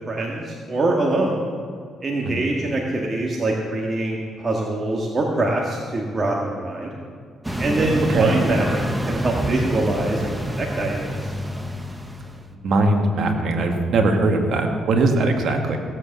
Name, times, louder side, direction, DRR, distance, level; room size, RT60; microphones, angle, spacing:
voice 1, 0.1-1.4 2.0-6.9 7.6-11.3, right 2 dB, 35° right, -1 dB, 1.8 m, -24 dB
sound 1, 7.4-12.5, equal, 10° right, 1.1 m, -27 dB
voice 2, 12.5-15.8, right 2 dB, 65° right, 3 dB, 2.0 m, -20 dB
16.5 x 8.0 x 7.1 m, 2.2 s
cardioid pair, 90°, 0 cm